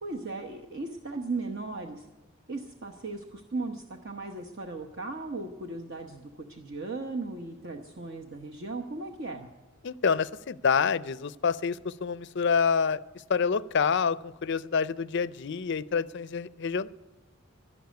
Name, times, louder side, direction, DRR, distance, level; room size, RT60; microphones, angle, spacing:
voice 1, 0.0-2.1 2.5-9.5, right 3 dB, 50° right, 3 dB, 1.0 m, -37 dB
voice 2, 9.8-13.0 13.3-16.9, left 6 dB, 50° left, 17 dB, 0.5 m, -27 dB
12.0 x 11.5 x 9.3 m, 1.1 s
head